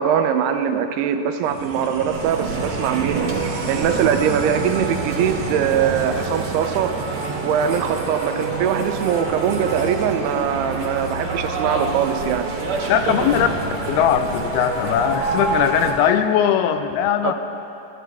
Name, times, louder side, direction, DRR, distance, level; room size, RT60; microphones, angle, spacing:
voice 1, 0.0-3.3 3.7-7.0 7.4-12.5 17.2-17.3, right 8 dB, 90° right, 8 dB, 2.8 m, -22 dB
sound 1, 1.4-8.1, right 5 dB, 75° right, 3.1 m, -31 dB
sound 2, 2.1-15.9, right 3 dB, 55° right, 2.7 m, -27 dB
voice 2, 12.9-13.5 13.9-17.3, left 9 dB, 85° left, 8 dB, 2.5 m, -19 dB
27.5 x 11.5 x 3.5 m, 2.8 s
omnidirectional pair, 4.5 m